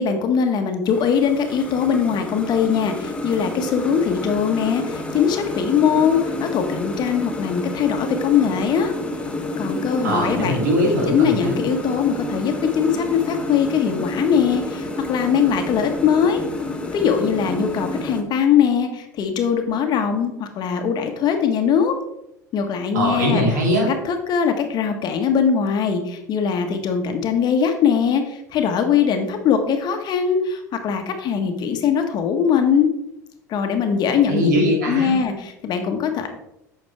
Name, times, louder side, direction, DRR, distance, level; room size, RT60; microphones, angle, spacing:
voice 1, 0.0-8.9 9.6-10.6 11.1-16.4 16.9-21.9 22.5-23.4 23.9-32.9 33.5-34.5 34.8-36.3, left 7 dB, 50° left, 5 dB, 1.4 m, -21 dB
sound 1, 0.9-18.2, left 2 dB, 10° left, 1.2 m, -29 dB
voice 2, 10.0-11.6 22.9-23.9 34.3-35.2, equal, 85° right, -1 dB, 3.0 m, -21 dB
9.1 x 6.3 x 3.5 m, 0.82 s
hypercardioid pair, 80°, 9 cm